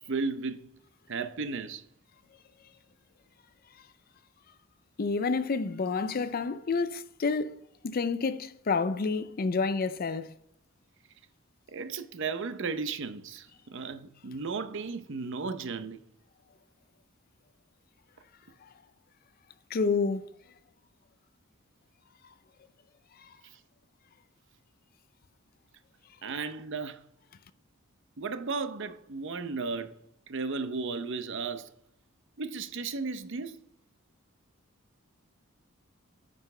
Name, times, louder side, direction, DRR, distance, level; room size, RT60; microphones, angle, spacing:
voice 1, 0.1-0.8 1.1-1.8 11.7-16.0 23.4-23.6 26.2-27.0 28.2-30.0 30.3-31.7 32.4-33.6, right 4 dB, 60° right, 0.7 m, -35 dB
voice 2, 5.0-7.6 7.8-10.3 19.7-20.3 23.2-23.3, left 4 dB, 45° left, 0.5 m, -29 dB
9.2 x 5.7 x 3.3 m
head